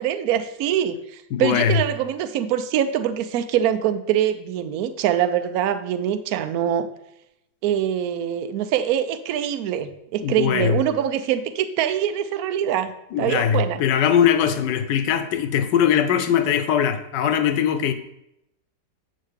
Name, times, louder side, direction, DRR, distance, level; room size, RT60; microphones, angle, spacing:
voice 1, 0.0-6.9 7.6-12.9 13.2-13.8, right 10 dB, 70° right, 11 dB, 1.0 m, -24 dB
voice 2, 1.3-1.8 10.2-10.8 13.1-17.9, left 8 dB, 80° left, 10 dB, 1.3 m, -21 dB
8.5 x 6.4 x 3.4 m, 0.81 s
omnidirectional pair, 1.9 m